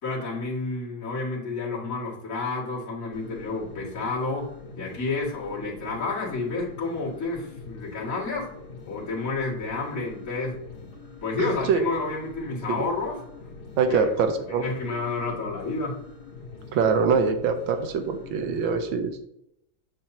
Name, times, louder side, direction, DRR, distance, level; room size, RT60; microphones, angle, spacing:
voice 1, 0.0-8.5 8.8-10.6 11.2-13.2 13.9-16.0, left 3 dB, 40° left, -7 dB, 2.7 m, -30 dB
sound 1, 3.1-18.7, left 4 dB, 90° left, 2.3 m, -44 dB
voice 2, 11.4-11.8 12.7-12.8 13.8-14.6 16.7-19.3, right 5 dB, 75° right, 7 dB, 1.5 m, -24 dB
7.5 x 6.3 x 2.8 m, 0.76 s
omnidirectional pair, 2.2 m